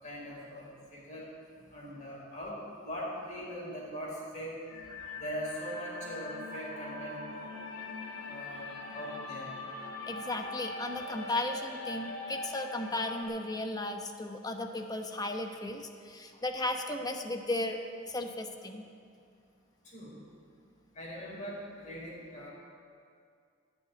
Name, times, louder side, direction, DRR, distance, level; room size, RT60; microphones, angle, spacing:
voice 1, 0.0-1.2 1.7-2.6 2.8-4.5 5.1-7.2 8.3-9.5 19.8-20.2 20.9-22.5, equal, 40° left, -5 dB, 4.9 m, -41 dB
sound 1, 4.6-13.2, left 2 dB, 90° left, 2.8 m, -42 dB
voice 2, 10.1-17.8 18.1-18.9, left 2 dB, 20° left, 5 dB, 1.0 m, -35 dB
16.0 x 6.9 x 9.5 m, 2.3 s
head